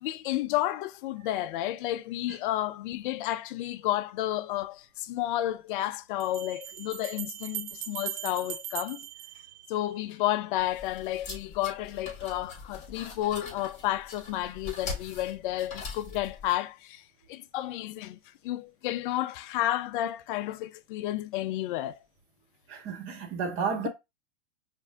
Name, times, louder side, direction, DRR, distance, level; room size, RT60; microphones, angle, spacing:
voice 1, 0.0-9.0 9.7-17.0 17.3-18.2 18.4-22.0, left 14 dB, 45° left, 0.4 m, -31 dB
sound 1, 4.6-4.7 6.2-10.2, right 11 dB, 65° right, 0.8 m, -39 dB
sound 2, 10.6-16.5, left 4 dB, 20° left, 1.9 m, -42 dB
voice 2, 22.7-23.9, right 5 dB, 35° right, 1.4 m, -32 dB
5.3 x 2.6 x 2.4 m
hypercardioid pair, 115°, 35 cm